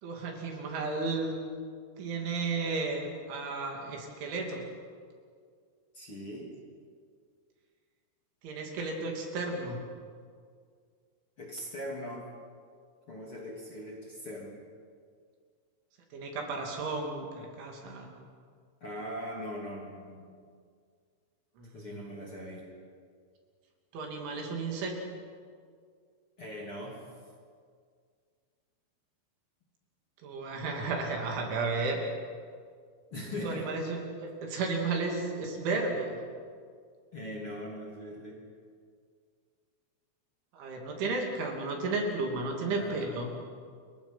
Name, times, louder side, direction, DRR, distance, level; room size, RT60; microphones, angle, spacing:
voice 1, 0.0-1.3 2.0-4.6 8.4-9.8 16.1-18.1 21.6-22.0 23.9-24.9 30.2-32.0 33.4-36.2 40.5-43.4, right 3 dB, 70° right, 1 dB, 5.2 m, -33 dB
voice 2, 5.9-6.5 11.4-12.3 13.1-14.6 18.8-20.3 21.7-22.7 26.4-27.0 33.1-33.7 37.1-38.4 42.7-43.2, equal, 30° left, -3 dB, 3.2 m, -40 dB
29.5 x 23.0 x 5.9 m, 2.1 s
omnidirectional pair, 5.8 m